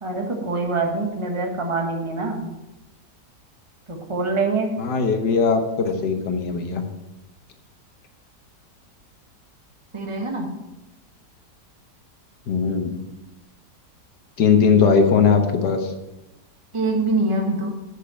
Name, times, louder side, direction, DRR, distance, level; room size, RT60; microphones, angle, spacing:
voice 1, 0.0-2.5 3.9-4.7 9.9-10.5 16.7-17.7, right 3 dB, 20° right, 1 dB, 1.4 m, -24 dB
voice 2, 4.8-6.8 12.5-13.0 14.4-15.9, left 5 dB, 85° left, 5 dB, 1.7 m, -19 dB
8.4 x 6.5 x 5.7 m, 0.98 s
omnidirectional pair, 1.8 m